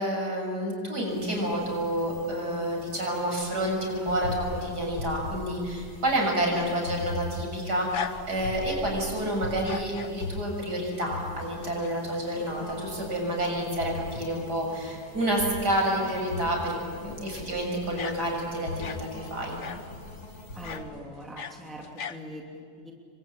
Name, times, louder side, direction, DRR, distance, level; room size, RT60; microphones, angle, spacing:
voice 1, 0.0-19.6, right 1 dB, 55° right, 0 dB, 7.4 m, -29 dB
sound 1, 1.1-20.8, left 2 dB, 85° left, 6.3 m, -40 dB
sound 2, 7.7-8.7 9.5-10.2 11.4-12.0 12.4-12.5 13.9-14.0 14.2-14.3 17.2-17.4 18.0-19.1 19.6-19.9 20.6-20.9 21.2-22.2, left 7 dB, 45° left, 1.1 m, -38 dB
voice 2, 20.5-22.9, equal, ahead, -1 dB, 2.9 m, -42 dB
29.5 x 23.5 x 8.7 m, 2.1 s
omnidirectional pair, 2.1 m